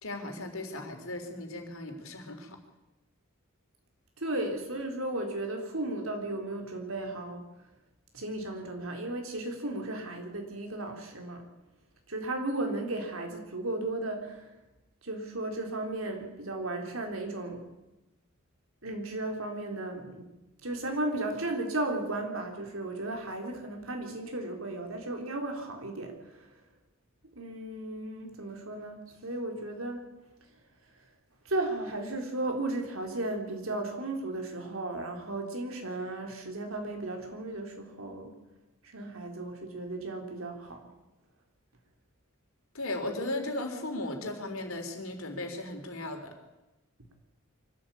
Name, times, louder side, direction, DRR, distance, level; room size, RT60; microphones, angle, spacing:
voice 1, 0.0-2.6 42.7-46.3, left 2 dB, 80° left, 4 dB, 3.7 m, -36 dB
voice 2, 4.2-7.5 8.1-11.5 12.1-14.6 15.0-17.7 18.8-20.3 20.6-26.6 27.2-30.1 31.4-38.4 38.8-40.9, right 2 dB, 75° right, 3 dB, 3.9 m, -35 dB
24.0 x 12.5 x 8.7 m, 0.99 s
head